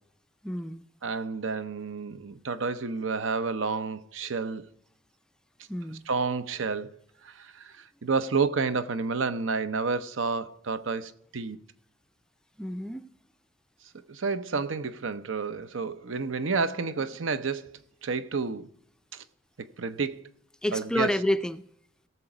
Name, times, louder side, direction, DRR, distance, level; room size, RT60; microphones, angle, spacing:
voice 1, 0.4-0.8 5.7-6.1 12.6-13.1 20.6-21.6, left 1 dB, 5° left, 0.3 m, -29 dB
voice 2, 1.0-4.7 6.1-6.9 7.2-11.6 14.1-18.7 19.1-19.2 19.8-20.3 20.7-21.1, right 4 dB, 85° right, 0.7 m, -30 dB
17.0 x 6.9 x 4.9 m
head